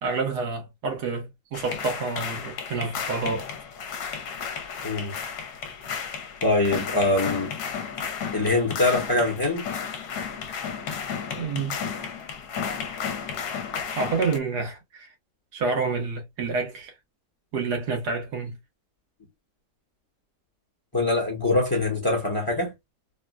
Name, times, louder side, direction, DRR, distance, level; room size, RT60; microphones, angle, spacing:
voice 1, 0.0-3.5 11.4-11.8 13.9-15.1 15.5-16.9 17.5-18.6, right 4 dB, 85° right, 1.7 m, -28 dB
sound 1, 1.5-14.4, left 7 dB, 70° left, 1.2 m, -33 dB
voice 2, 6.4-7.5 8.3-9.7 20.9-22.7, left 2 dB, 15° left, 0.9 m, -23 dB
3.7 x 2.2 x 2.3 m
omnidirectional pair, 1.7 m